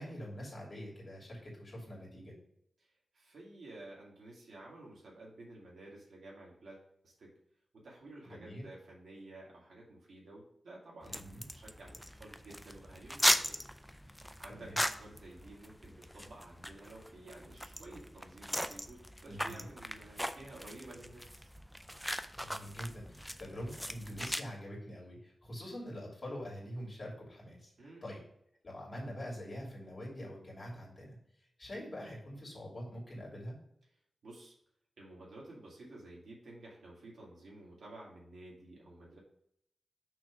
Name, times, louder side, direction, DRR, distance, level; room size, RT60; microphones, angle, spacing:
voice 1, 0.0-2.3 8.2-8.6 11.1-11.4 14.5-14.8 19.3-19.6 22.3-27.7 28.0-28.2 28.6-31.2 31.6-33.6, equal, 30° left, -4 dB, 2.7 m, -44 dB
voice 2, 2.8-7.3 7.8-13.6 13.9-21.5 27.8-28.1 34.2-34.5 35.0-39.2, right 2 dB, 80° right, -3 dB, 2.2 m, -52 dB
sound 1, 11.0-24.4, equal, ahead, 0.3 m, -38 dB
6.0 x 3.3 x 5.9 m, 0.74 s
wide cardioid pair, 140°, 0 cm